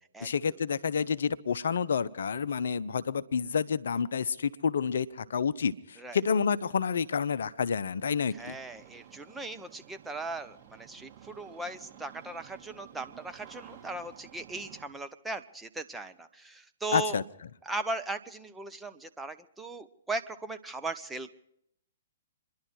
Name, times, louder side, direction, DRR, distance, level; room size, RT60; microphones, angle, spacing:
voice 1, 0.2-8.6 16.9-17.2, left 6 dB, 65° left, 15 dB, 0.6 m, -29 dB
voice 2, 8.3-17.2 17.6-21.4, right 2 dB, 5° right, 7 dB, 0.8 m, -38 dB
Engine starting, 8.3-14.9, right 10 dB, 40° right, 2.4 m, -53 dB
27.0 x 11.0 x 4.7 m, 0.75 s
figure-of-eight pair, 120°, 0 cm